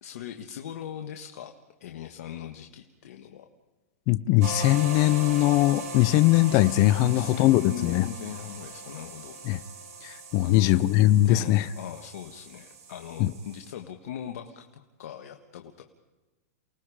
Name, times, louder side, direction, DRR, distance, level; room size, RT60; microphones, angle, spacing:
voice 1, 0.0-1.5 1.8-3.5 7.0-9.4 10.4-15.8, left 10 dB, 70° left, 4 dB, 1.7 m, -39 dB
voice 2, 4.1-8.1 9.5-9.6 10.0-11.7 13.2-13.3, left 15 dB, 40° left, 15 dB, 0.8 m, -21 dB
sound 1, 4.4-13.7, right 2 dB, 70° right, 6.3 m, -40 dB
29.5 x 19.5 x 5.0 m, 1.2 s
hypercardioid pair, 130°, 8 cm